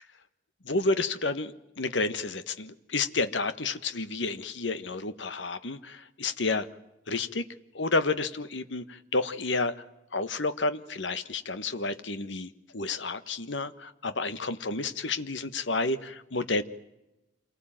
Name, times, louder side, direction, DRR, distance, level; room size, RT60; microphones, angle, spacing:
voice 1, 0.6-6.7 7.1-7.4 7.7-9.8 10.1-16.6, left 3 dB, 75° left, 12 dB, 1.3 m, -30 dB
27.5 x 20.0 x 9.0 m, 0.94 s
head